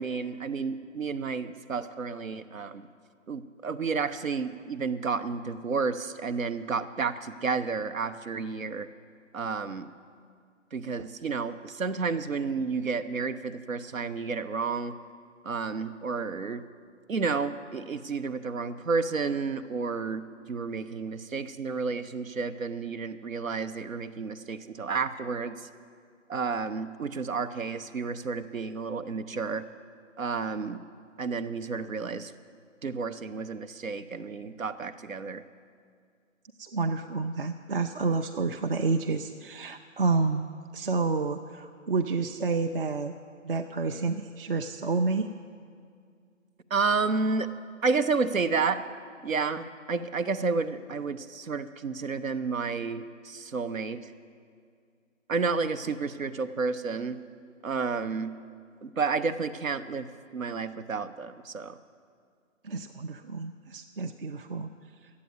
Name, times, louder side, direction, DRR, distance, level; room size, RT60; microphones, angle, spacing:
voice 1, 0.0-2.9 3.3-8.9 9.3-9.9 10.7-14.9 15.4-16.6 17.1-25.5 26.3-29.6 30.2-30.8 31.2-32.3 32.8-35.4 46.7-47.5 47.8-48.9 49.2-54.0 55.3-57.2 57.6-58.3 58.8-60.1 60.3-61.8, right 4 dB, 85° right, 12 dB, 0.9 m, -31 dB
voice 2, 36.6-43.1 43.4-45.3 62.6-64.7 65.0-65.1, right 4 dB, 45° right, 5 dB, 0.5 m, -29 dB
12.5 x 8.5 x 9.3 m, 2.2 s
figure-of-eight pair, 150°, 39 cm